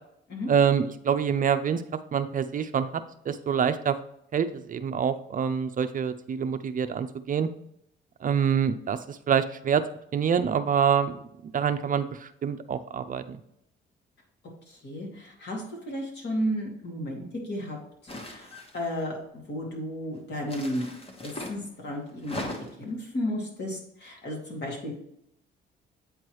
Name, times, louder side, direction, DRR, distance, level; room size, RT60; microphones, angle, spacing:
voice 1, 0.5-1.8 2.1-4.0 4.3-7.5 8.2-9.8 10.1-11.2 11.4-13.4, right 7 dB, 45° right, 10 dB, 0.5 m, -26 dB
voice 2, 14.7-17.8 18.0-20.9 21.2-22.5 22.8-24.9, equal, 60° left, -1 dB, 2.3 m, -33 dB
sound 1, 18.1-19.0 20.4-21.6 22.2-22.9, left 1 dB, 30° left, 1.3 m, -38 dB
8.5 x 4.5 x 3.1 m, 0.73 s
cardioid pair, 90°, 20 cm